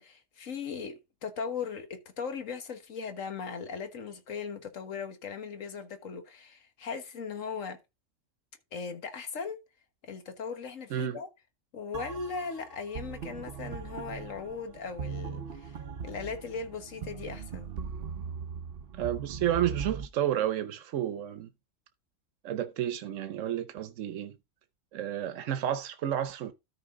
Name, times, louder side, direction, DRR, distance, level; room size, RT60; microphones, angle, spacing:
voice 1, 0.0-7.8 8.7-9.6 10.0-11.3 11.7-15.8 16.0-17.7, left 5 dB, 90° left, 1.7 m, -38 dB
sound 1, 11.9-20.1, right 6 dB, 55° right, 0.8 m, -40 dB
voice 2, 19.0-21.5 22.4-24.4 24.9-26.5, right 11 dB, 80° right, 1.1 m, -31 dB
13.0 x 4.8 x 3.7 m
omnidirectional pair, 1.3 m